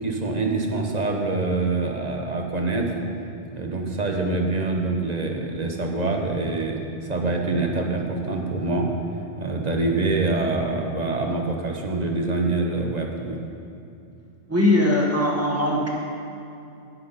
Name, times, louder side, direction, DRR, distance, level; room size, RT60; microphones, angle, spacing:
voice 1, 0.0-3.0 3.5-6.8 7.1-8.9 9.4-13.4, right 3 dB, 40° right, 2 dB, 1.0 m, -25 dB
voice 2, 14.5-15.9, left 1 dB, 15° right, -3 dB, 1.6 m, -20 dB
11.0 x 10.0 x 4.2 m, 2.6 s
omnidirectional pair, 1.2 m